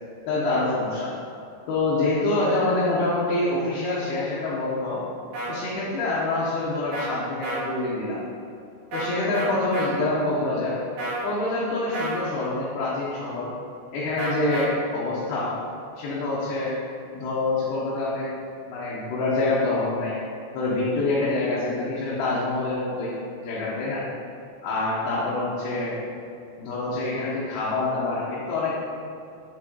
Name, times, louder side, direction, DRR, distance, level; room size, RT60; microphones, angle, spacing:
voice 1, 0.3-1.1 1.7-5.0 5.4-8.2 8.9-10.8 11.2-13.5 13.9-15.5 16.0-16.7 17.1-18.3 18.7-20.1 20.5-23.1 23.4-24.0 24.6-26.0 26.6-28.7, left 2 dB, 75° left, -8 dB, 2.6 m, -26 dB
sound 1, 5.3-5.5 6.9-7.1 7.4-7.6 8.9-9.1 9.3-9.9 11.0-11.3 11.9-12.2 14.2-14.7, right 2 dB, 90° right, 1.6 m, -30 dB
7.6 x 3.6 x 3.7 m, 2.5 s
omnidirectional pair, 5.0 m